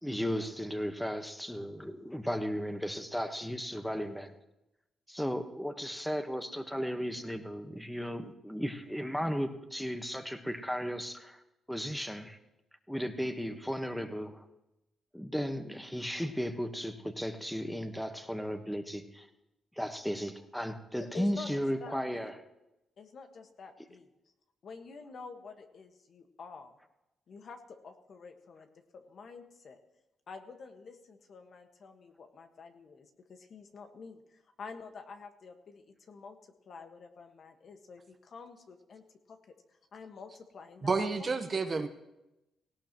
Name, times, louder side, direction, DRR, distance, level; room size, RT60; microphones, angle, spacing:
voice 1, 0.0-4.3 5.1-11.4 11.7-12.4 12.9-14.4 15.1-19.3 19.8-22.3, equal, ahead, 7 dB, 1.4 m, -35 dB
voice 2, 21.1-22.3 23.0-24.1 24.6-26.7 27.3-28.7 28.9-29.8 30.3-36.4 36.6-39.0 39.3-41.1, left 5 dB, 55° left, 5 dB, 1.6 m, -48 dB
voice 3, 40.8-41.9, right 4 dB, 35° right, 7 dB, 1.1 m, -30 dB
17.5 x 17.5 x 3.1 m, 0.93 s
cardioid pair, 85°, 0 cm